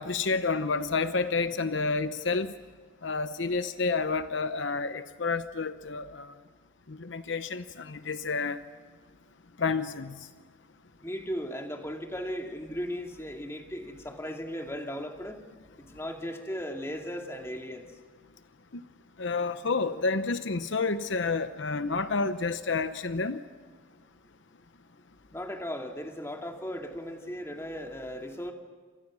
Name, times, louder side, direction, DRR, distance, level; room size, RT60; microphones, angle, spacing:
voice 1, 0.0-2.5 3.0-6.3 6.9-8.6 9.6-10.2 19.2-23.4, left 4 dB, 65° left, 11 dB, 0.8 m, -29 dB
voice 2, 11.0-15.4 15.8-17.9 25.3-28.5, equal, 15° left, 3 dB, 2.3 m, -37 dB
29.5 x 27.0 x 6.2 m, 1.5 s
head